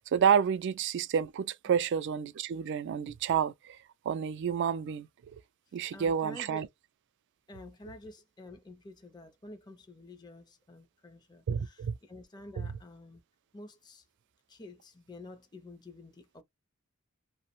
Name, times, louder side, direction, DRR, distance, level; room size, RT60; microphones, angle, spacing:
voice 1, 0.0-3.8 4.1-5.1 5.7-6.7 11.5-12.0 12.6-12.7, right 7 dB, 55° right, 0.3 m, -29 dB
voice 2, 5.9-6.7 7.5-13.2 13.5-14.0 14.5-16.4, left 2 dB, 20° left, 0.5 m, -49 dB
2.6 x 2.1 x 2.9 m
head